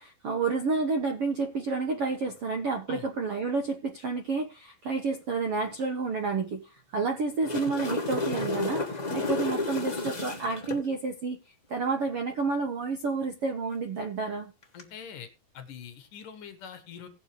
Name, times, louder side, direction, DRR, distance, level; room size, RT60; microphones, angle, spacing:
voice 1, 0.0-11.4 11.7-14.5, right 4 dB, 65° right, 5 dB, 1.5 m, -30 dB
sound 1, 7.2-10.8 14.6-14.8, left 3 dB, 30° left, 0.7 m, -31 dB
voice 2, 14.7-15.3 15.5-17.1, left 7 dB, 65° left, 9 dB, 2.8 m, -43 dB
19.0 x 6.8 x 3.2 m, 0.30 s
omnidirectional pair, 4.5 m